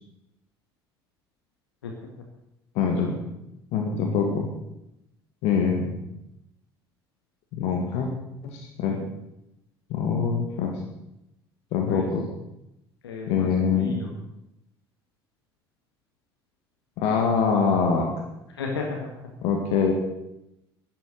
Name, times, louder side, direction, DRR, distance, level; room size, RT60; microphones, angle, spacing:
voice 1, 1.8-2.3 11.9-12.1 13.0-14.1 18.5-19.3, left 4 dB, 75° left, 1 dB, 1.7 m, -34 dB
voice 2, 2.8-3.2 3.7-4.5 5.4-5.9 7.5-8.1 8.4-9.0 9.9-10.8 11.7-12.2 13.3-14.0 17.0-18.2 19.4-19.9, left 6 dB, 55° left, 2 dB, 2.0 m, -24 dB
11.5 x 11.5 x 6.5 m, 0.87 s
figure-of-eight pair, 60°, 13 cm